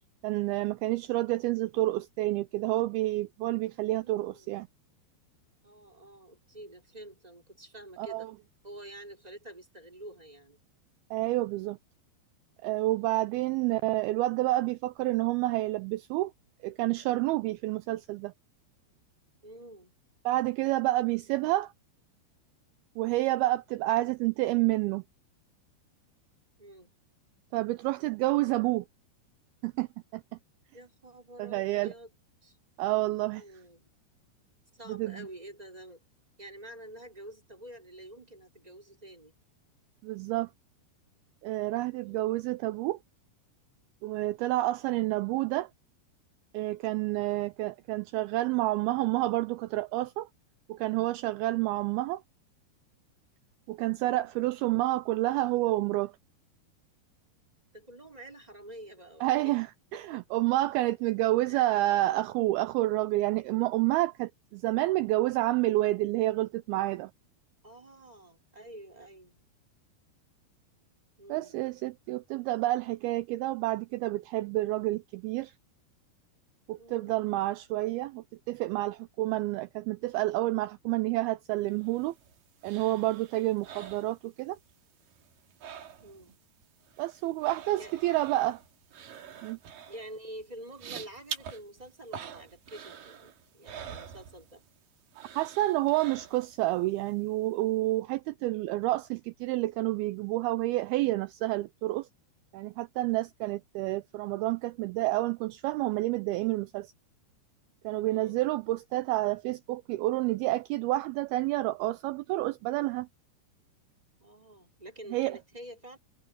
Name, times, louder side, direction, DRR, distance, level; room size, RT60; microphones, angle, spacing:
voice 1, 0.2-4.7 8.0-8.3 11.1-11.8 12.6-16.3 16.6-18.3 20.3-21.7 23.0-25.0 27.5-28.9 29.6-29.9 30.1-30.2 31.4-31.9 32.8-33.4 34.9-35.3 40.0-40.5 41.4-43.0 44.0-45.7 46.5-50.3 50.7-52.2 53.7-56.1 59.2-59.7 59.9-67.1 71.3-75.5 76.7-82.2 82.6-84.6 87.0-88.6 89.4-89.6 95.4-102.1 102.5-106.9 107.8-113.1 115.1-115.4, right 18 dB, 85° right, 2.2 m, -29 dB
voice 2, 3.9-4.6 5.6-8.3 8.6-10.6 12.9-13.3 19.4-20.0 26.6-26.9 30.7-32.1 32.4-32.6 33.4-33.9 34.7-36.0 36.4-39.3 41.9-42.3 57.7-59.6 59.9-60.4 61.4-61.7 67.6-69.4 71.2-71.6 76.8-77.2 86.0-86.3 87.8-87.9 89.9-94.6 108.1-108.5 114.2-116.0, right 1 dB, 10° right, 3.6 m, -48 dB
sound 1, 81.7-84.7 85.0-86.4 86.6-94.8 95.1-96.7 97.1-97.2, right 8 dB, 60° right, 3.5 m, -46 dB
omnidirectional pair, 4.9 m